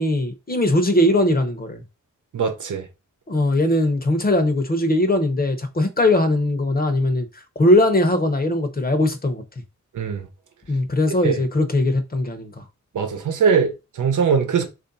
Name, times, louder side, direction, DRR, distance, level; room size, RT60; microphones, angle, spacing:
voice 1, 0.0-1.8 3.3-7.3 7.6-9.4 10.7-12.6, left 1 dB, 30° left, 0.8 m, -20 dB
voice 2, 2.3-2.9 9.9-10.3 11.2-11.4 12.9-14.7, right 6 dB, 85° right, 0.8 m, -21 dB
3.3 x 2.6 x 4.0 m
wide cardioid pair, 85°, 30 cm